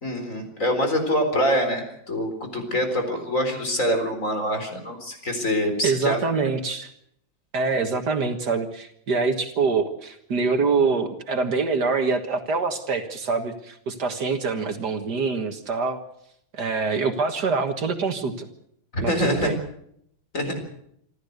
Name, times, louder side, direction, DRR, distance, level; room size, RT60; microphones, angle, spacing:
voice 1, 0.0-6.2 18.9-19.6 20.3-20.6, equal, 40° left, 6 dB, 4.4 m, -25 dB
voice 2, 5.8-6.9 7.5-16.0 16.5-18.5 19.0-19.6, right 4 dB, 60° right, 7 dB, 2.1 m, -25 dB
27.0 x 13.5 x 8.0 m, 0.73 s
omnidirectional pair, 2.1 m